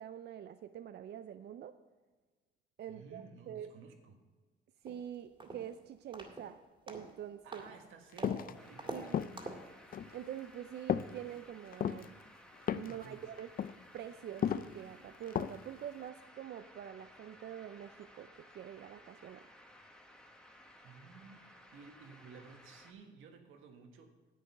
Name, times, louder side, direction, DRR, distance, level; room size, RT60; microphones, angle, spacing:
voice 1, 0.0-1.7 2.8-3.7 4.8-6.6 6.9-7.6 8.9-9.2 10.1-12.2 12.7-13.5 13.9-19.5, right 10 dB, 60° right, 10 dB, 0.5 m, -46 dB
voice 2, 2.9-4.2 7.4-9.1 12.8-13.3 20.8-24.1, right 5 dB, 85° right, 4 dB, 1.5 m, -55 dB
sound 1, 4.9-5.0 5.4-5.7 6.1-6.5 6.9-7.1 7.5-7.7 8.2-8.4 8.8-9.0 9.4-9.7, right 2 dB, 25° right, 2.1 m, -44 dB
sound 2, 8.2-8.5 9.1-9.5 9.9-10.2 10.9-11.2 11.7-12.1 12.7-13.1 13.4-13.7 14.4-14.8 15.3-15.7 16.0-16.1, left 9 dB, 45° left, 0.4 m, -34 dB
sound 3, 8.5-22.9, equal, 5° left, 1.3 m, -58 dB
10.0 x 8.3 x 5.4 m, 1.3 s
cardioid pair, 90°, 20 cm